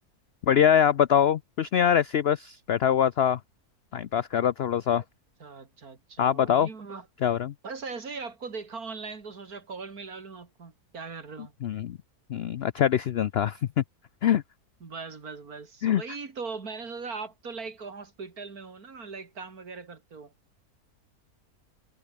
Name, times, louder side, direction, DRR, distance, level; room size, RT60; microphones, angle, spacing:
voice 1, 0.4-3.4 3.9-5.0 6.2-6.7 7.2-7.5 11.6-12.0 12.3-13.8 14.2-14.4 15.8-16.0, left 9 dB, 75° left, 0.5 m, -23 dB
voice 2, 5.4-7.1 7.6-11.5 14.8-20.3, right 4 dB, 65° right, 3.1 m, -40 dB
omnidirectional pair, 1.7 m